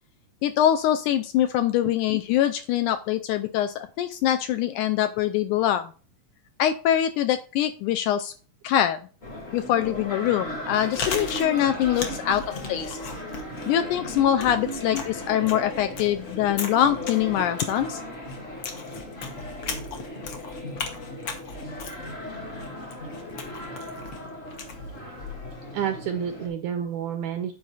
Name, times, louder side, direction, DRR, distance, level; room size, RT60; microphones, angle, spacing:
voice 1, 0.4-5.9 6.6-8.3 8.6-9.0 9.5-12.4 12.7-13.0 13.7-18.0, left 11 dB, 80° left, 8 dB, 1.8 m, -23 dB
sound 1, 9.2-26.5, left 1 dB, 35° left, 1.0 m, -37 dB
Chewing mastication, 10.6-25.7, left 5 dB, 60° left, 1.5 m, -38 dB
voice 2, 25.7-27.5, right 8 dB, 80° right, 6 dB, 1.7 m, -30 dB
9.5 x 4.3 x 4.0 m, 0.37 s
omnidirectional pair, 3.9 m